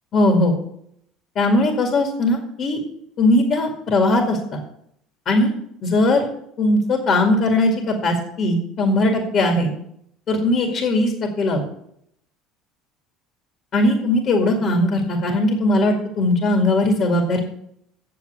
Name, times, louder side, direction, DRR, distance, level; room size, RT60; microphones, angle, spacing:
voice 1, 0.1-0.5 1.4-2.8 3.2-4.6 5.3-5.5 5.8-6.3 6.6-9.7 10.3-11.6 13.7-17.4, left 1 dB, 50° left, 3 dB, 2.1 m, -19 dB
8.3 x 7.0 x 7.9 m, 0.72 s
hypercardioid pair, 70°, 0 cm